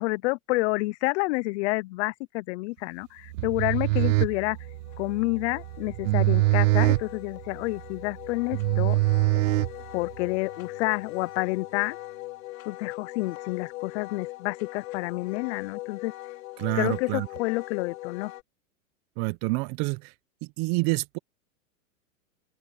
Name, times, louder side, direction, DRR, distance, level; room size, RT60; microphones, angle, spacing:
voice 1, 0.0-4.6 5.0-9.0 9.9-12.0 12.7-16.1 16.7-18.3, left 23 dB, 50° left, 0.9 m, -29 dB
sound 1, 3.3-10.3, right 21 dB, 65° right, 0.5 m, -24 dB
Wind instrument woodwind instrument, 4.0-18.4, left 18 dB, 70° left, 4.6 m, -40 dB
voice 2, 16.6-17.3 19.2-20.1 20.4-21.2, right 27 dB, 45° right, 1.1 m, -28 dB
open air
hypercardioid pair, 120°, 43 cm